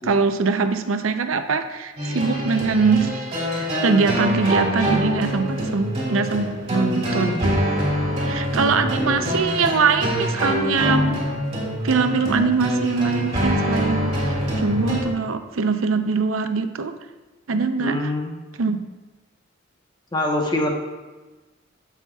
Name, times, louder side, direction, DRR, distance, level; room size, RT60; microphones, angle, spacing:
voice 1, 0.0-3.2 3.8-7.5 8.2-11.2 11.8-17.0 17.5-18.1 18.6-18.8, right 4 dB, 85° right, 9 dB, 0.6 m, -22 dB
sound 1, 2.0-15.0, equal, 30° right, 2.5 m, -24 dB
voice 2, 9.0-9.4 17.8-18.3 20.1-20.7, left 1 dB, 20° left, 1 dB, 1.0 m, -25 dB
15.0 x 5.8 x 2.3 m, 1.2 s
head